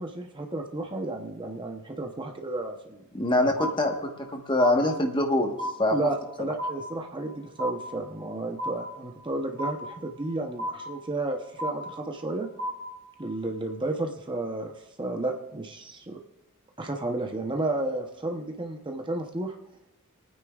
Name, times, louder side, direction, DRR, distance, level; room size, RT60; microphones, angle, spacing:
voice 1, 0.0-3.0 3.4-3.6 5.9-12.5 13.2-14.7 15.0-16.2 16.8-19.6, right 2 dB, 20° right, 3 dB, 0.8 m, -32 dB
voice 2, 3.1-5.5 5.8-6.0, left 1 dB, 20° left, 3 dB, 1.3 m, -24 dB
sound 1, 3.6-4.3 4.6-5.3 5.6-6.3 6.6-7.3 7.6-8.3 8.6-9.3 9.6-10.3 10.6-11.3 11.6-12.3 12.6-13.3, equal, 65° right, 3.5 m, -34 dB
28.5 x 9.5 x 2.4 m, 0.91 s
head